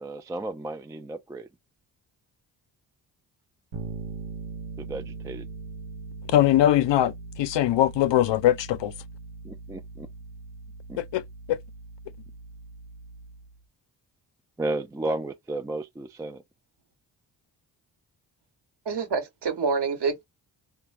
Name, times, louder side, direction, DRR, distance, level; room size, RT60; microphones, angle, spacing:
voice 1, 0.0-1.5 4.8-5.5 9.4-10.1 10.9-11.0 14.6-16.4, right 2 dB, 10° right, 0.3 m, -33 dB
Bass guitar, 3.7-13.6, right 4 dB, 90° right, 0.9 m, -40 dB
voice 2, 6.3-8.9 11.0-11.2 11.5-11.6, left 12 dB, 65° left, 0.5 m, -21 dB
voice 3, 18.8-20.3, right 5 dB, 55° right, 1.1 m, -27 dB
2.4 x 2.2 x 3.3 m
supercardioid pair, 45°, 48 cm